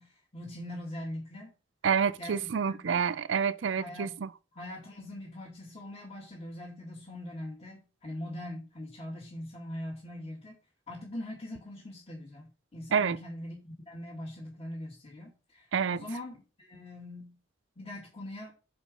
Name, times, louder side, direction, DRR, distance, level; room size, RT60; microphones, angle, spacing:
voice 1, 0.0-1.5 2.2-2.8 3.8-4.2 4.5-10.6 10.9-17.4 17.8-18.5, left 1 dB, 35° left, 2.3 m, -42 dB
voice 2, 1.8-4.3 12.9-13.2 15.7-16.0, right 6 dB, 75° right, 0.5 m, -28 dB
6.3 x 5.1 x 5.1 m
head